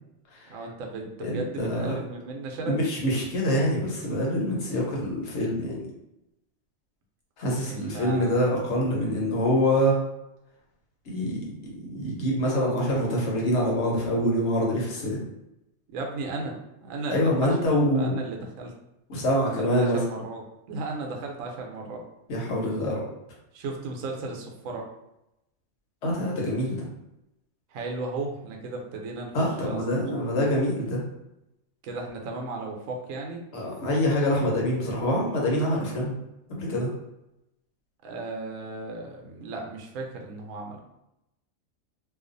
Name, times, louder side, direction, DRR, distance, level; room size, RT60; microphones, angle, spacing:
voice 1, 0.5-2.9 7.7-8.4 15.9-17.6 17.9-18.7 19.6-22.0 23.5-24.9 27.7-30.0 31.8-33.4 38.0-40.8, right 3 dB, 90° right, 1 dB, 1.0 m, -35 dB
voice 2, 1.2-2.0 2.6-5.9 7.4-10.0 11.1-15.2 17.1-18.2 19.1-20.0 22.3-23.0 26.0-26.8 29.3-31.0 33.5-36.1 36.5-36.9, equal, 65° left, -2 dB, 1.0 m, -25 dB
2.4 x 2.3 x 2.5 m, 0.89 s
omnidirectional pair, 1.4 m